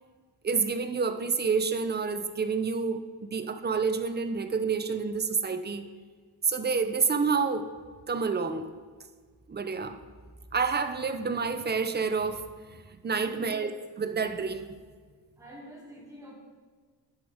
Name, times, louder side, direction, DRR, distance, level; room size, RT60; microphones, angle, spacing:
voice 1, 0.4-5.9 6.5-7.7 8.1-8.7 9.5-10.0 10.5-12.4 13.0-13.7 14.0-14.7, right 5 dB, 25° right, 9 dB, 0.5 m, -28 dB
voice 2, 13.2-13.7 15.4-16.3, equal, 5° right, -4 dB, 2.2 m, -47 dB
11.0 x 5.1 x 3.5 m, 1.5 s
cardioid pair, 90°, 46 cm